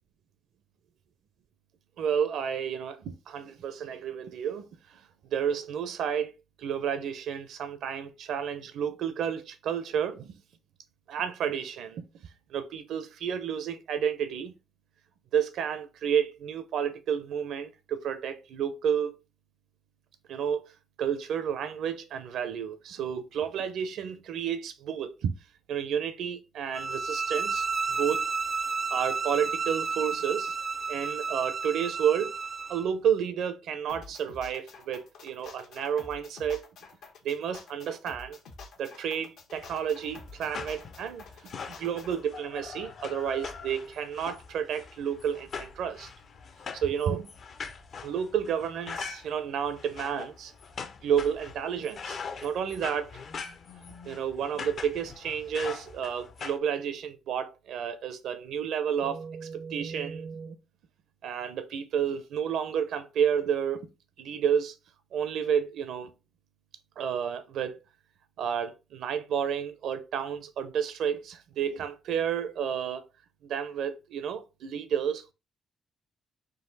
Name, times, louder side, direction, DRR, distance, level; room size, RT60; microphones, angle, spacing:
voice 1, 2.0-4.7 4.9-5.0 5.3-10.4 11.1-12.0 12.5-14.5 15.3-19.2 20.3-20.7 21.0-25.4 25.7-28.3 28.9-30.5 30.9-32.3 32.7-36.7 37.2-38.4 38.8-41.2 41.7-46.1 46.7-47.3 48.0-50.5 51.0-53.2 54.0-60.6 61.2-63.9 64.2-64.7 65.1-66.1 67.0-67.8 68.4-73.0 73.4-75.3, right 8 dB, 75° right, 0.6 m, -31 dB
sound 1, 26.7-32.9, right 5 dB, 35° right, 0.3 m, -31 dB
sound 2, 33.9-42.2, left 4 dB, 80° left, 1.0 m, -48 dB
sound 3, 39.5-56.6, left 5 dB, 55° left, 0.6 m, -42 dB
4.0 x 2.5 x 4.0 m
cardioid pair, 90°, 0 cm